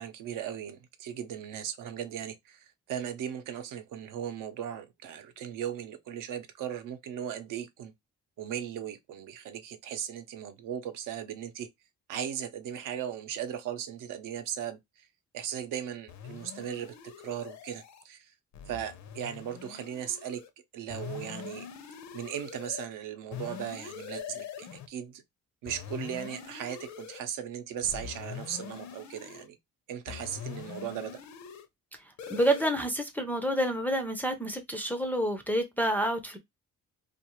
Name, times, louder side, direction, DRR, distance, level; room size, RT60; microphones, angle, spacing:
voice 1, 0.0-7.9 8.4-11.7 12.1-15.1 15.3-18.3 18.7-20.4 20.7-21.7 22.1-25.2 25.6-29.6 29.9-31.2, right 9 dB, 90° right, 0.7 m, -37 dB
sound 1, 16.1-18.0 18.5-20.5 20.9-22.9 23.3-24.9 25.7-27.2 27.8-29.5 30.1-31.7 32.2-32.7, left 8 dB, 65° left, 0.6 m, -43 dB
voice 2, 32.3-36.4, right 1 dB, 5° left, 0.3 m, -28 dB
2.4 x 2.3 x 2.9 m
cardioid pair, 165°, 31 cm